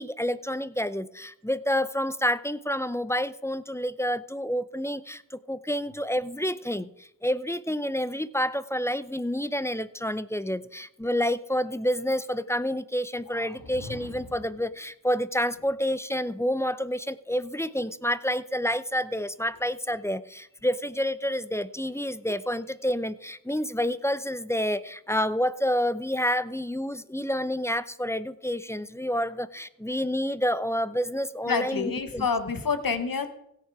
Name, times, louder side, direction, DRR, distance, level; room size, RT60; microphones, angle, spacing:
voice 1, 0.0-32.3, equal, 10° left, 16 dB, 0.5 m, -29 dB
voice 2, 13.3-13.6 31.5-33.3, left 5 dB, 70° left, 10 dB, 1.2 m, -28 dB
sound 1, 13.4-14.6, left 2 dB, 85° left, 1.4 m, -43 dB
16.5 x 6.5 x 4.8 m, 0.76 s
cardioid pair, 45°, 36 cm